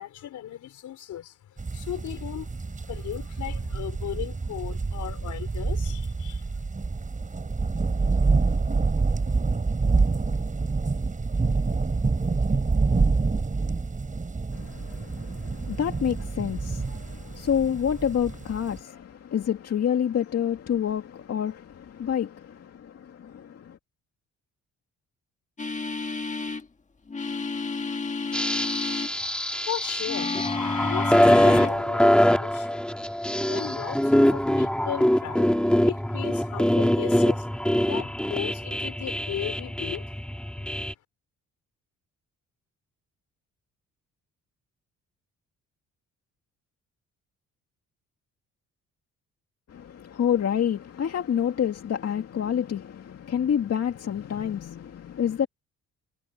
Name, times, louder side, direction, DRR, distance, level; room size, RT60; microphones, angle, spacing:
voice 1, 0.0-6.5 28.6-29.3 29.7-30.4 30.8-32.9 33.5-35.5 35.9-40.1, left 11 dB, 75° left, 4.1 m, -37 dB
sound 1, 1.6-18.8, right 4 dB, 25° right, 4.6 m, -27 dB
voice 2, 14.5-23.8 49.7-55.5, left 8 dB, 55° left, 2.3 m, -28 dB
sound 2, 25.6-26.6 27.1-29.1 30.1-31.8 32.2-32.4, left 4 dB, 25° left, 1.5 m, -31 dB
sound 3, 28.3-40.9, equal, 5° left, 3.0 m, -23 dB
cardioid pair, 90°, 30 cm